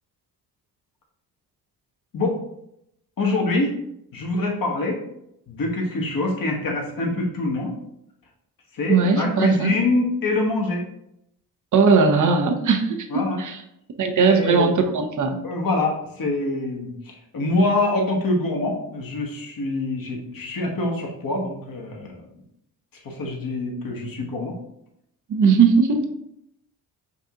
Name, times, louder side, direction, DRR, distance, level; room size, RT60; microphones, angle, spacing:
voice 1, 3.2-3.8 4.1-5.0 5.5-7.8 8.7-10.8 13.1-13.4 14.3-14.7 15.4-22.2 23.0-24.5, left 2 dB, 45° left, 0 dB, 1.3 m, -25 dB
voice 2, 8.9-9.7 11.7-13.6 14.0-15.4 25.3-26.1, right 5 dB, 40° right, 5 dB, 0.7 m, -19 dB
6.7 x 2.6 x 2.5 m, 0.80 s
hypercardioid pair, 45°, 48 cm